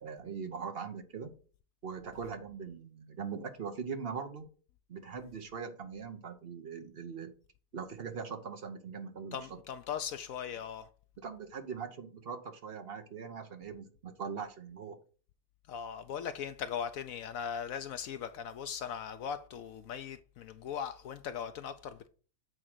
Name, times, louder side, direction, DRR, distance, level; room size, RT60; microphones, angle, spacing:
voice 1, 0.0-1.3 1.8-4.4 4.9-7.3 7.7-9.5 11.2-15.0, right 6 dB, 50° right, 0.7 m, -41 dB
voice 2, 9.3-10.9 15.7-22.1, left 8 dB, 75° left, 0.7 m, -39 dB
7.9 x 3.7 x 6.0 m
omnidirectional pair, 2.0 m